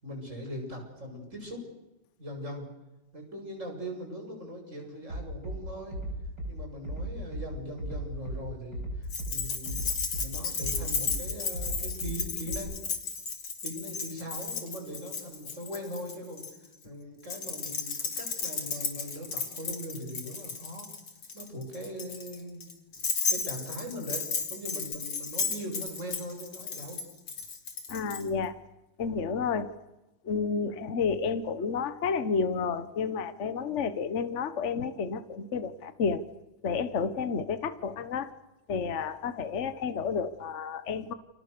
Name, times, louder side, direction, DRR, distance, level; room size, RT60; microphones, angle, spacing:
voice 1, 0.0-1.6 2.2-2.7 3.1-6.0 6.5-9.8 10.2-12.8 13.6-16.5 16.8-20.9 21.3-22.6 23.3-24.2 24.5-27.0, equal, 35° right, 2 dB, 7.6 m, -40 dB
Bass drum, 5.1-5.6 5.9-6.5 6.8-7.5 7.8-8.4 8.7-9.3 9.7-10.3 10.6-11.2 11.5-12.1 12.5-12.6, right 1 dB, 50° right, 7.0 m, -35 dB
Keys jangling, 9.1-16.5 17.2-28.2, left 5 dB, 90° left, 4.0 m, -34 dB
voice 2, 27.9-28.5 29.0-29.7 30.2-36.2 36.6-38.3 38.7-41.1, left 5 dB, 40° left, 11 dB, 1.4 m, -31 dB
30.0 x 26.5 x 6.9 m, 1.0 s
omnidirectional pair, 2.3 m